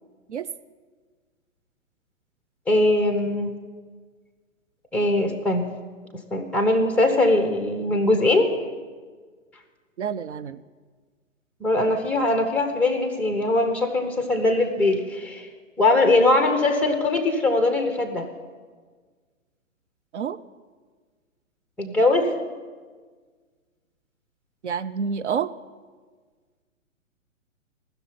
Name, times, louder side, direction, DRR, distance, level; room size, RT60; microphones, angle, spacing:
voice 1, 2.7-3.5 4.9-5.7 6.3-8.5 11.6-15.5 15.8-18.3 21.8-22.3, left 2 dB, 5° left, 6 dB, 1.0 m, -21 dB
voice 2, 10.0-10.6 20.1-20.4 24.6-25.5, right 7 dB, 60° right, 11 dB, 0.6 m, -28 dB
18.5 x 6.9 x 9.6 m, 1.5 s
figure-of-eight pair, 120°, 40 cm